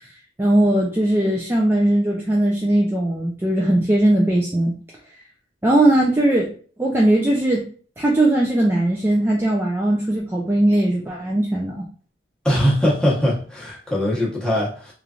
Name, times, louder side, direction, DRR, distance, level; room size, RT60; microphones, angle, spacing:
voice 1, 0.4-4.7 5.6-6.5 6.8-7.7 8.0-11.9, right 1 dB, 15° right, -2 dB, 0.3 m, -19 dB
voice 2, 12.4-14.9, equal, 5° left, -6 dB, 0.9 m, -21 dB
3.1 x 2.4 x 2.4 m, 0.42 s
head